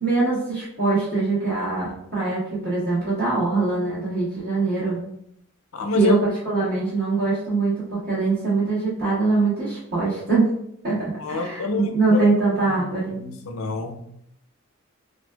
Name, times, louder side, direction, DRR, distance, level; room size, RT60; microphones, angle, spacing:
voice 1, 0.0-5.0 5.9-10.5 10.8-13.2, right 3 dB, 50° right, -11 dB, 1.2 m, -23 dB
voice 2, 5.7-6.2 11.2-12.3 12.7-12.8 13.1-14.0, left 4 dB, 80° left, 5 dB, 0.5 m, -27 dB
4.3 x 2.3 x 2.2 m, 0.72 s
head